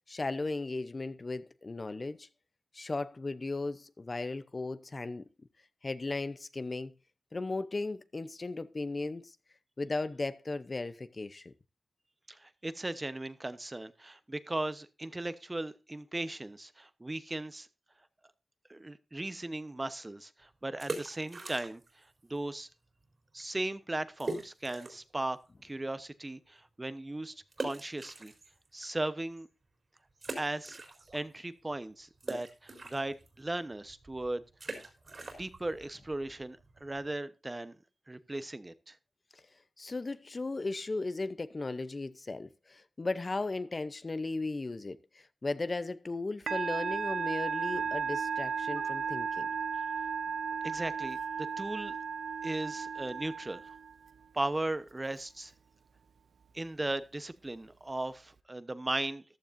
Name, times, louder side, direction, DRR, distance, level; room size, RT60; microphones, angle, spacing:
voice 1, 0.1-2.3 2.7-5.2 5.8-6.9 7.3-9.4 9.8-11.5 39.8-49.5, left 3 dB, 40° left, 0.7 m, -36 dB
voice 2, 12.3-17.7 18.7-22.7 23.3-28.3 28.7-29.5 30.4-30.8 31.1-34.4 34.7-34.9 35.2-37.8 38.1-39.0 50.6-51.2 51.6-52.0 52.4-53.7 54.3-55.5 56.5-59.2, right 2 dB, 25° right, 1.0 m, -37 dB
sound 1, 20.8-22.0 22.3-22.4 23.0-23.1 23.4-23.5 24.2-25.1 25.6-25.7 27.5-28.9 29.4-29.5 30.2-31.4 31.6-37.1, right 2 dB, 50° right, 4.0 m, -42 dB
Musical instrument, 46.5-54.1, right 6 dB, 85° right, 0.6 m, -35 dB
14.5 x 12.0 x 2.6 m
cardioid pair, 70°, 0 cm